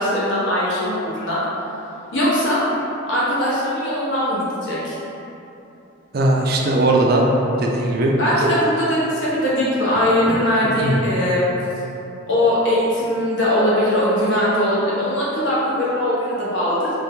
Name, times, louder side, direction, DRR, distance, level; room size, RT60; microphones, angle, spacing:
voice 1, 0.0-1.4 2.1-2.6 3.0-5.0 8.2-11.5 12.3-16.9, left 1 dB, 60° left, -8 dB, 1.0 m, -20 dB
voice 2, 6.1-7.3 7.6-8.1 10.0-10.1 10.8-11.0, right 2 dB, 45° right, 0 dB, 0.4 m, -18 dB
3.3 x 2.7 x 3.6 m, 3.0 s
head